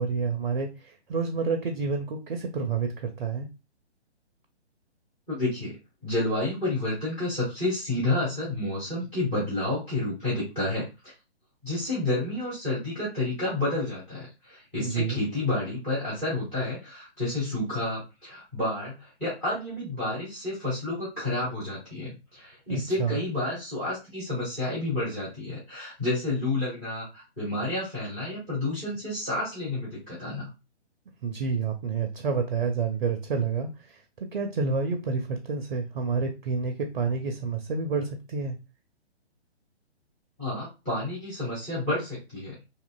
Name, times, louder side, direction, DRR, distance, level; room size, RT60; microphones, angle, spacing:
voice 1, 0.0-3.5 14.8-15.2 22.7-23.2 31.2-34.0 34.3-38.6, right 5 dB, 50° right, 5 dB, 0.4 m, -29 dB
voice 2, 5.3-5.8 6.0-11.1 11.6-30.5 40.4-42.6, left 2 dB, 5° left, -7 dB, 0.5 m, -30 dB
2.8 x 2.4 x 2.2 m, 0.27 s
figure-of-eight pair, 135°, 34 cm